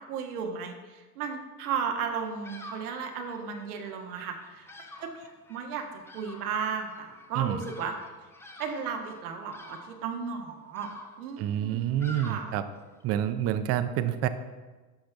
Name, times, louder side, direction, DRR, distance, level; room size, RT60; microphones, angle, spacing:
voice 1, 0.1-4.7 5.0-5.2 5.5-5.8 6.1-7.9 8.6-10.9 11.2-12.5, right 6 dB, 85° right, 3 dB, 1.4 m, -34 dB
Bird vocalization bird call bird song, 2.1-13.1, left 1 dB, 5° left, 0.6 m, -49 dB
voice 2, 11.4-12.6 13.0-14.3, right 11 dB, 35° right, 11 dB, 0.5 m, -28 dB
12.0 x 5.7 x 3.4 m, 1.3 s
supercardioid pair, 120°, 43 cm